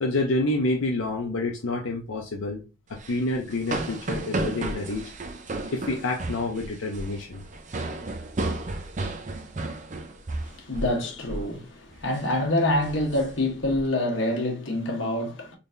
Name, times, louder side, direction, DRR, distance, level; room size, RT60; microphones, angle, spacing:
voice 1, 0.0-2.6 2.9-5.1 5.7-7.4, left 2 dB, 85° left, 0.6 m, -28 dB
sound 1, 2.9-11.0 11.3-11.5 11.9-12.2 12.7-13.8, right 2 dB, 35° right, 0.5 m, -33 dB
voice 2, 10.4-15.6, left 1 dB, 65° left, 1.0 m, -26 dB
3.8 x 3.3 x 2.5 m
head